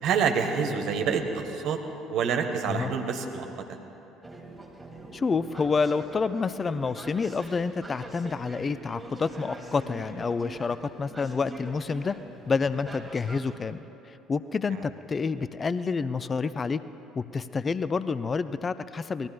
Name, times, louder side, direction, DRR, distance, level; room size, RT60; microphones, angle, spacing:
voice 1, 0.0-1.8 2.1-3.5, right 6 dB, 55° right, 4 dB, 1.3 m, -27 dB
sound 1, 4.2-13.6, right 2 dB, 15° right, 2.5 m, -44 dB
voice 2, 5.1-12.2 12.5-16.8 17.2-19.3, left 4 dB, 30° left, 14 dB, 0.4 m, -28 dB
27.5 x 20.0 x 2.3 m, 3.0 s
figure-of-eight pair, 55°, 0 cm